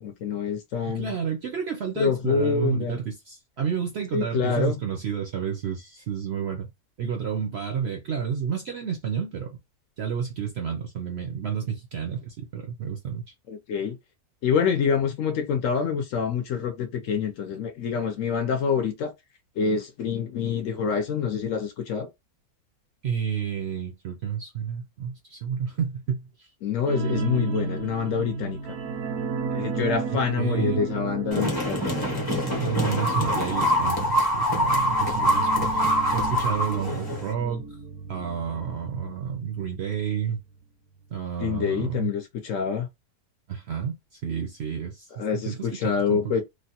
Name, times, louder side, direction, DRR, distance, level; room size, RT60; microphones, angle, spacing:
voice 1, 0.0-1.1 2.0-3.0 4.1-4.8 13.5-14.0 14.4-19.1 19.6-22.1 26.6-28.6 29.5-32.1 41.4-42.9 45.2-46.4, left 6 dB, 65° left, 0.9 m, -26 dB
voice 2, 0.8-6.7 7.0-9.5 10.0-13.2 23.0-26.5 30.3-30.8 32.6-37.7 38.1-40.4 41.1-42.1 43.5-45.1 45.3-46.3, right 7 dB, 65° right, 0.6 m, -30 dB
sound 1, 26.9-40.1 40.4-40.6 41.0-41.1, right 4 dB, 85° right, 1.3 m, -33 dB
sound 2, 31.3-37.3, equal, 20° left, 0.6 m, -24 dB
3.2 x 2.1 x 2.8 m
omnidirectional pair, 1.6 m